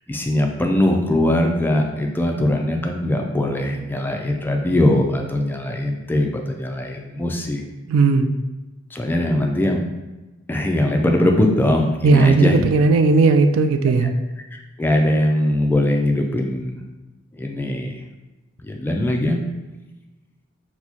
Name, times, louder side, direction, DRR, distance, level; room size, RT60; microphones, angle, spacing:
voice 1, 0.1-7.6 8.9-9.8 10.5-12.6 14.0-14.1 14.5-16.8 17.4-18.0 18.6-19.4, left 1 dB, 10° left, 2 dB, 0.3 m, -21 dB
voice 2, 7.9-8.3 12.0-14.1, right 4 dB, 80° right, 7 dB, 0.3 m, -16 dB
4.3 x 2.1 x 2.8 m, 1.1 s
head